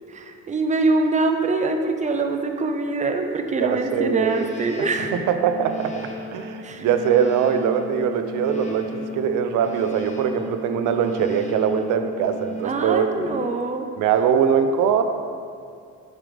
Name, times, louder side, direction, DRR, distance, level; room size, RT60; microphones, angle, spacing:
voice 1, 0.1-5.1 6.6-6.9 12.6-13.9, right 3 dB, 25° right, 5 dB, 0.6 m, -24 dB
voice 2, 3.6-4.5 5.0-5.9 6.3-13.4 14.0-15.0, right 7 dB, 85° right, 7 dB, 0.5 m, -22 dB
sound 1, 3.7-13.6, equal, 25° left, 0.9 m, -35 dB
7.4 x 4.9 x 3.4 m, 2.3 s
cardioid pair, 90°, 30 cm